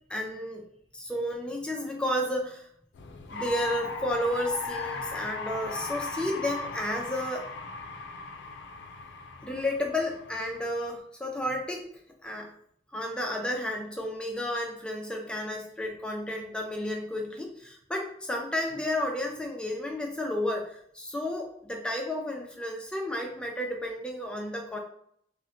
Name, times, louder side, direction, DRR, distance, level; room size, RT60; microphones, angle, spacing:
voice 1, 0.1-0.6 0.9-2.7 3.3-7.5 9.4-11.9 12.2-12.5 12.9-24.8, left 1 dB, 5° left, 0 dB, 0.3 m, -32 dB
sound 1, 2.9-10.9, left 4 dB, 85° left, 0.4 m, -38 dB
3.9 x 2.1 x 2.6 m, 0.68 s
head